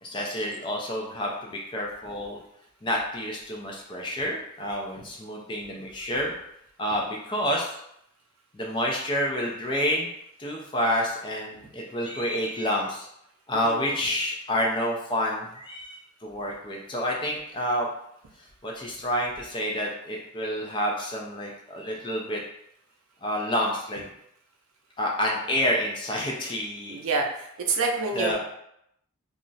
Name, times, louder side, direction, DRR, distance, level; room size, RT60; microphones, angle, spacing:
voice 1, 0.0-2.4 2.8-6.3 6.8-7.8 8.5-10.1 10.4-13.1 13.5-17.9 18.6-22.4 23.2-24.0 25.0-27.0 28.2-28.4, equal, 25° left, -1 dB, 0.3 m, -29 dB
voice 2, 13.5-13.9 26.9-28.4, right 4 dB, 85° right, 2 dB, 0.5 m, -27 dB
2.3 x 2.0 x 3.8 m, 0.75 s
head